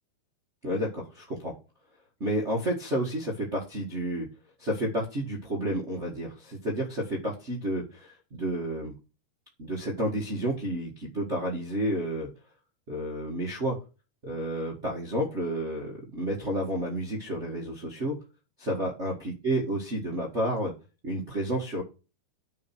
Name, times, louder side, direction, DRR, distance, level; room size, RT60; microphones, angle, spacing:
voice 1, 0.6-1.5 2.2-4.3 4.6-8.9 9.6-12.3 12.9-13.8 14.2-18.1 18.6-20.7 21.0-21.8, right 1 dB, 60° right, -2 dB, 0.7 m, -30 dB
9.9 x 5.3 x 6.0 m, 0.31 s
omnidirectional pair, 4.6 m